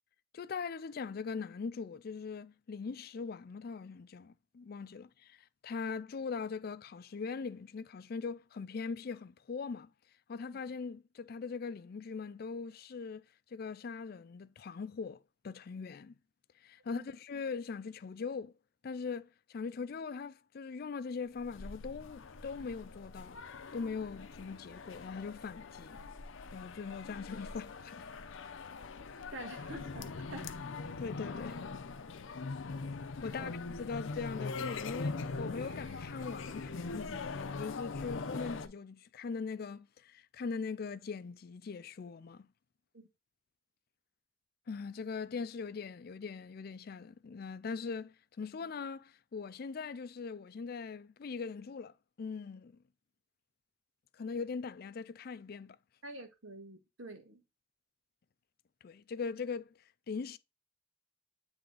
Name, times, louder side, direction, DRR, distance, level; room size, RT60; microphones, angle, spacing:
voice 1, 0.3-9.9 10.3-13.2 13.5-16.1 16.6-18.5 18.8-23.4 23.7-26.0 26.5-28.1 31.0-31.6 33.2-42.5 44.7-52.8 54.1-55.8 58.8-60.4, left 5 dB, 50° left, 0.4 m, -41 dB
sound 1, 21.3-38.7, left 4 dB, 85° left, 0.6 m, -42 dB
voice 2, 29.3-30.5 33.3-33.5 42.9-43.1 56.0-57.4, right 2 dB, 85° right, 1.7 m, -47 dB
sound 2, 35.5-38.6, right 1 dB, 35° right, 3.6 m, -64 dB
8.5 x 3.5 x 3.9 m
head